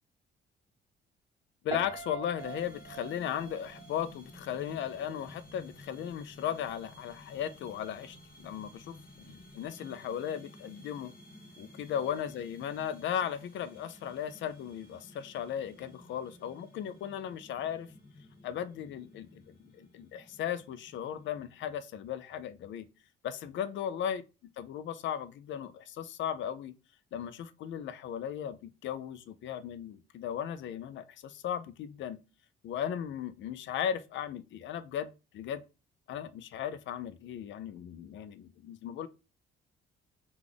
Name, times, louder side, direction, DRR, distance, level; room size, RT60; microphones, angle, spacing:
voice 1, 1.6-11.1 11.6-17.9 18.4-19.4 19.7-22.9 23.2-24.2 24.6-26.7 27.1-32.2 32.6-35.6 36.1-39.1, left 9 dB, 70° left, 0.5 m, -36 dB
Piano, 1.7-4.8 5.1-5.5, right 5 dB, 25° right, 0.8 m, -43 dB
sound 1, 2.4-21.7, left 1 dB, 50° left, 1.2 m, -54 dB
3.2 x 2.4 x 3.7 m
supercardioid pair, 70°, 20 cm